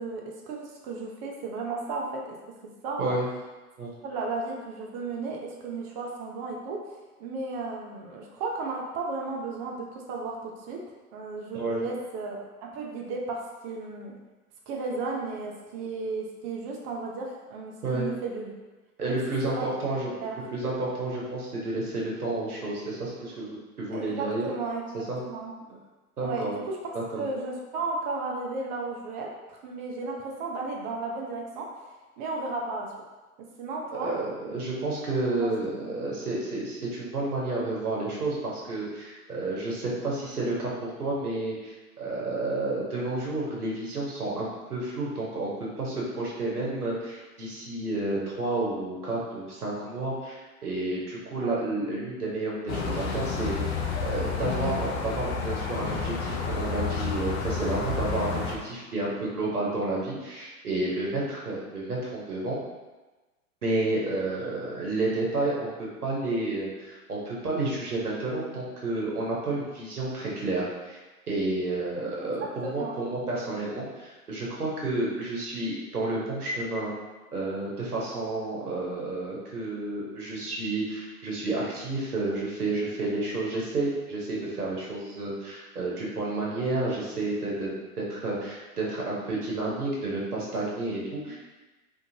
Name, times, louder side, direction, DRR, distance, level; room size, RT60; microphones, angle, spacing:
voice 1, 0.0-2.4 2.8-3.2 4.0-6.8 7.2-10.8 11.1-12.4 12.7-14.1 14.7-18.5 19.1-19.2 19.6-19.7 20.2-20.4 23.9-24.8 25.2-25.8 26.2-26.8 27.2-32.9 33.6-34.1 35.4-35.5 35.8-36.0 51.4-51.6 72.2-73.4 91.3-91.4, right 3 dB, 35° right, -1 dB, 0.5 m, -34 dB
voice 2, 19.0-20.1 20.5-24.5 24.9-25.2 26.2-26.5 26.9-27.2 33.9-45.5 45.8-62.6 63.6-71.0 71.3-76.9 77.3-91.4, right 2 dB, 90° right, -5 dB, 0.9 m, -30 dB
sound 1, 52.7-58.5, left 5 dB, 50° left, 0.6 m, -30 dB
2.7 x 2.5 x 2.7 m, 1.2 s
figure-of-eight pair, 90°, 44 cm